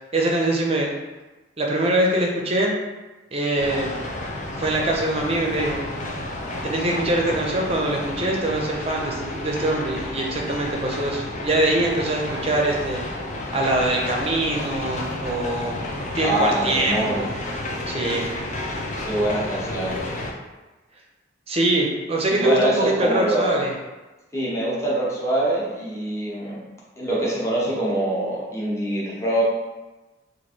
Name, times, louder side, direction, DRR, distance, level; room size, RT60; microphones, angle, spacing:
voice 1, 0.1-0.9 1.6-2.8 3.3-3.9 4.6-5.8 6.6-13.0 13.5-15.7 16.2-17.3 17.9-18.3 21.5-23.7, right 1 dB, 30° right, -1 dB, 0.6 m, -23 dB
sound 1, 3.6-20.3, left 1 dB, 40° left, 0.5 m, -31 dB
voice 2, 16.2-17.2 18.2-18.3 19.0-20.0 22.3-23.6 24.3-26.6 27.0-29.4, right 1 dB, 15° left, -6 dB, 0.9 m, -24 dB
3.1 x 2.5 x 4.3 m, 1.2 s
head